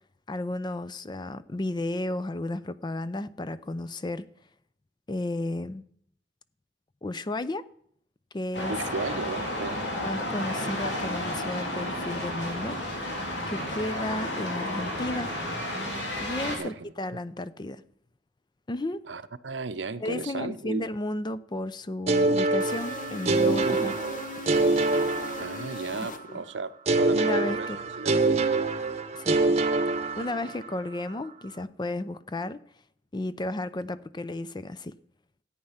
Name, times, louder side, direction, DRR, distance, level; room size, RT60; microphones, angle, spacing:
voice 1, 0.3-4.3 5.1-5.8 7.0-7.7 8.3-8.7 10.0-12.8 13.5-15.3 16.2-17.8 18.7-19.1 20.0-23.9 26.3-26.4 27.1-27.8 29.1-29.4 30.2-32.6 33.1-35.0, left 1 dB, 25° left, 0.5 m, -33 dB
sound 1, 8.5-16.6, left 1 dB, 70° left, 3.5 m, -32 dB
voice 2, 8.7-9.8 13.4-13.8 16.5-16.8 19.1-20.9 23.6-24.0 25.4-27.7 28.0-28.4, right 4 dB, 80° right, 0.7 m, -35 dB
sound 2, 22.1-26.0 26.9-30.7, right 3 dB, 35° right, 0.9 m, -25 dB
sound 3, 22.6-26.7, left 3 dB, 45° left, 0.9 m, -39 dB
14.0 x 8.9 x 5.7 m
head